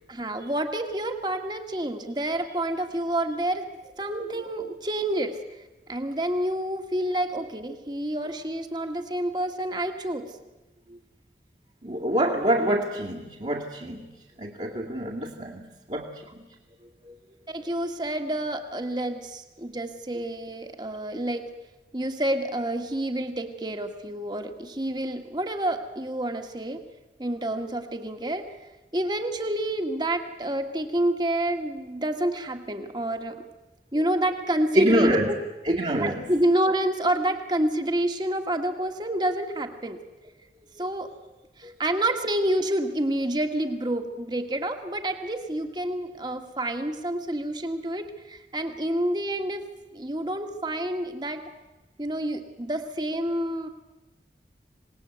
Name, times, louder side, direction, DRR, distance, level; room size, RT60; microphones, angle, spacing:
voice 1, 0.1-3.7 4.0-5.6 5.9-10.3 17.5-21.4 21.9-26.8 27.2-28.6 28.9-33.5 33.9-35.1 35.9-40.0 40.8-41.1 41.6-51.5 52.0-53.7, right 1 dB, 25° right, 6 dB, 1.8 m, -28 dB
voice 2, 4.1-4.5 10.9-11.0 11.8-14.1 14.4-16.4 17.0-17.2 17.6-17.7 20.1-20.2 33.9-34.1 34.7-35.3 35.6-36.4 41.6-41.7, right 1 dB, 40° right, -5 dB, 2.3 m, -26 dB
26.5 x 19.5 x 8.1 m, 1.1 s
head